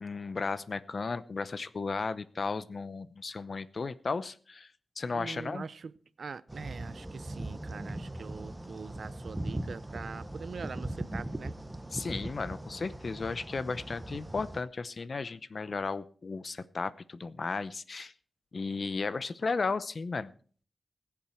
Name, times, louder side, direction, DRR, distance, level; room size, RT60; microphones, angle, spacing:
voice 1, 0.0-4.7 5.0-5.6 11.9-18.1 18.5-20.3, left 4 dB, 60° left, 0.7 m, -34 dB
voice 2, 5.1-11.6, right 5 dB, 75° right, 0.5 m, -43 dB
sound 1, 6.5-14.6, right 1 dB, 15° right, 1.0 m, -40 dB
20.5 x 7.2 x 4.4 m
wide cardioid pair, 75°, 0 cm